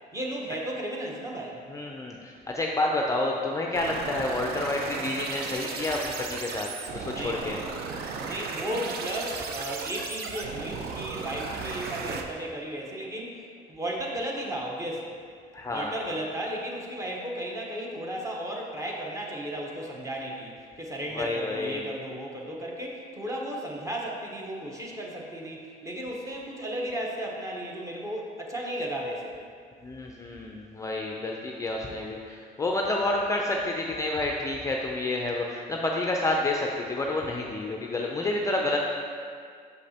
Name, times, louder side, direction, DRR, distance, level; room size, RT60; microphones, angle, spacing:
voice 1, 0.1-1.6 7.1-7.6 8.2-13.4 13.7-15.1 15.7-29.4, right 1 dB, 20° right, -2 dB, 0.9 m, -34 dB
voice 2, 1.7-7.6 15.5-16.2 21.1-21.8 29.8-38.8, left 2 dB, 20° left, 0 dB, 0.4 m, -29 dB
sound 1, 3.7-12.2, right 4 dB, 70° right, 0.6 m, -35 dB
6.5 x 5.2 x 2.8 m, 2.2 s
cardioid pair, 110°, 17 cm